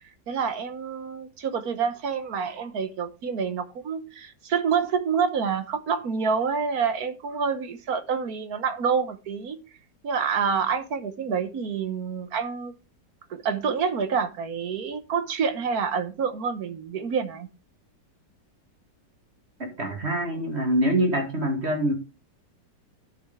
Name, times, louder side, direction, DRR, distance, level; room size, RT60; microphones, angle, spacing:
voice 1, 0.3-9.6 10.0-12.7 13.3-17.5, right 6 dB, 60° right, 1.4 m, -27 dB
voice 2, 19.6-21.9, right 1 dB, 35° right, 2.5 m, -25 dB
11.5 x 6.4 x 3.6 m
omnidirectional pair, 1.9 m